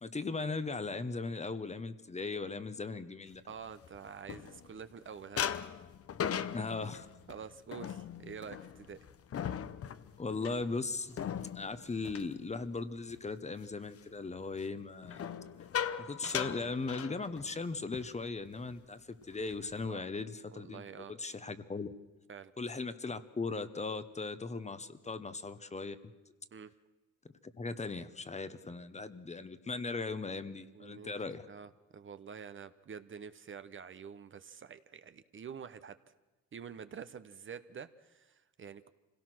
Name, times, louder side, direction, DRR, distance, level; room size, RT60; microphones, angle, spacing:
voice 1, 0.0-3.4 6.5-7.1 10.2-15.3 16.0-21.9 22.6-26.0 27.6-31.4, left 3 dB, 20° left, 12 dB, 1.0 m, -38 dB
sound 1, 3.5-4.9 5.4-13.2 13.5-13.9 15.0-17.6 17.9-18.1 18.4-18.7 19.2-19.9, left 8 dB, 50° left, 0.9 m, -39 dB
voice 2, 3.5-5.5 7.3-9.0 19.9-20.0 20.5-21.1 22.3-22.5 26.5-26.7 30.7-31.1 31.5-36.0 36.5-38.9, right 7 dB, 40° right, 12 dB, 0.9 m, -47 dB
25.5 x 17.0 x 6.2 m, 1.1 s
cardioid pair, 90°, 30 cm